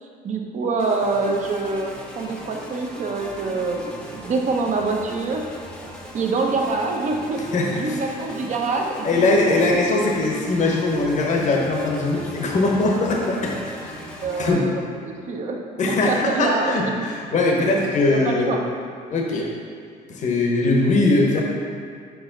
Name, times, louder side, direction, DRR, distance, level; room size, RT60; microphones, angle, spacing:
voice 1, 0.0-5.4 6.1-7.4 7.7-9.6 14.2-14.7 15.0-15.6 15.9-17.0 18.1-18.6, right 3 dB, 45° right, 2 dB, 0.8 m, -25 dB
sound 1, 0.8-14.5, equal, 5° left, 0.8 m, -38 dB
voice 2, 7.5-8.0 9.0-14.0 14.4-14.7 15.8-18.6 19.1-19.5 20.1-21.4, left 2 dB, 45° left, -1 dB, 0.9 m, -21 dB
5.2 x 4.8 x 3.8 m, 2.3 s
cardioid pair, 110°, 17 cm